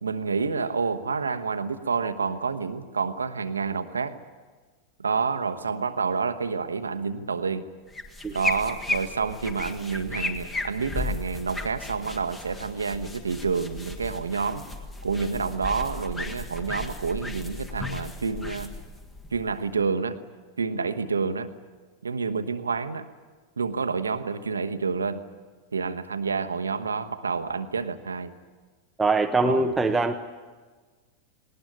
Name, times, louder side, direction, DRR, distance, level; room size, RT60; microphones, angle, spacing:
voice 1, 0.0-4.1 5.0-7.7 8.3-14.6 15.0-18.7 19.3-20.2 20.6-21.5 22.0-23.1 23.6-25.2 25.7-28.3 29.4-29.7, right 5 dB, 75° right, 9 dB, 1.1 m, -28 dB
sound 1, 7.9-19.8, left 2 dB, 15° left, 1.8 m, -35 dB
voice 2, 29.0-30.2, right 3 dB, 10° right, 6 dB, 0.9 m, -23 dB
19.0 x 19.0 x 9.9 m, 1.4 s
figure-of-eight pair, 90°, 0 cm